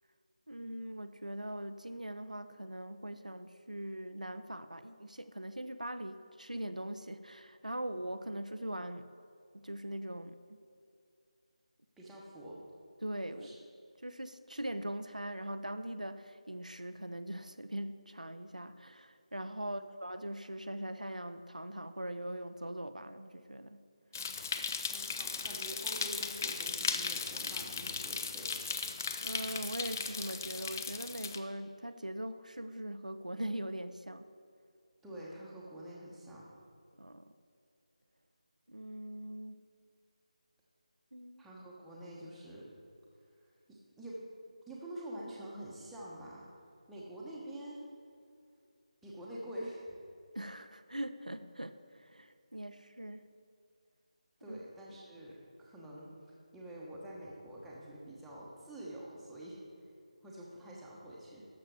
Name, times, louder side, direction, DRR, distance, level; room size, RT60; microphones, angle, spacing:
voice 1, 0.5-9.1 9.5-10.4 13.0-13.7 14.0-23.9 29.2-34.3 37.0-37.3 38.7-39.7 41.1-41.4 50.3-53.3 54.5-54.6, right 1 dB, 90° right, 10 dB, 0.6 m, -41 dB
voice 2, 12.0-12.6 13.4-13.5 19.6-19.8 24.8-28.5 35.0-36.5 41.4-42.7 43.7-44.2 44.7-46.5 46.9-47.8 49.0-50.0 54.4-59.9 60.2-61.5, right 1 dB, ahead, -7 dB, 1.0 m, -47 dB
sound 1, 24.1-31.4, left 5 dB, 25° left, 0.4 m, -37 dB
12.0 x 6.7 x 4.7 m, 2.4 s
figure-of-eight pair, 160°, 4 cm